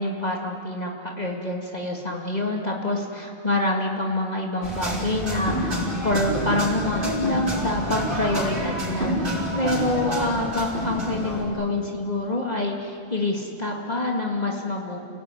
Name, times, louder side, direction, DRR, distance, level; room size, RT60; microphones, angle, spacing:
voice 1, 0.0-15.0, left 2 dB, 40° left, 0 dB, 2.4 m, -26 dB
sound 1, 4.6-11.5, equal, 50° right, 6.0 m, -28 dB
29.0 x 18.5 x 10.0 m, 2.5 s
omnidirectional pair, 1.1 m